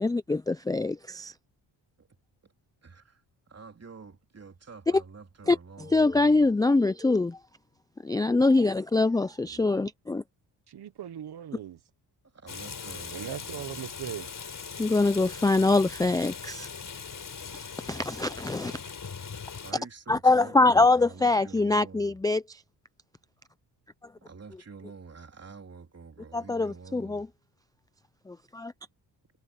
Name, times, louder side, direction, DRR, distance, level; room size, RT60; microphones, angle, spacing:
voice 1, 0.0-1.3 5.5-7.4 8.0-10.2 14.8-16.7 17.5-18.7 20.1-22.6 26.3-27.3 28.3-28.7, left 3 dB, 10° left, 0.4 m, -24 dB
voice 2, 2.8-3.2 3.5-6.5 9.4-9.7 12.3-13.9 19.6-22.2 24.2-27.3, right 5 dB, 30° right, 3.6 m, -47 dB
voice 3, 10.7-11.8 13.1-14.3, right 11 dB, 55° right, 1.1 m, -39 dB
Rain, 12.5-19.7, left 6 dB, 40° left, 3.8 m, -40 dB
cardioid pair, 95°, 47 cm